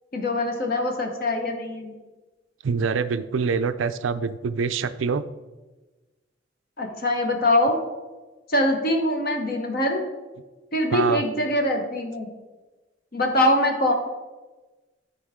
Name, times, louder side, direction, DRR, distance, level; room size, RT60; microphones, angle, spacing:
voice 1, 0.1-1.9 6.8-7.8 8.5-10.0 10.7-12.3 13.1-13.9, left 1 dB, 50° left, 4 dB, 1.2 m, -23 dB
voice 2, 2.6-5.2 10.9-11.2, right 5 dB, 90° right, 12 dB, 0.4 m, -25 dB
12.5 x 4.7 x 3.7 m, 1.2 s
head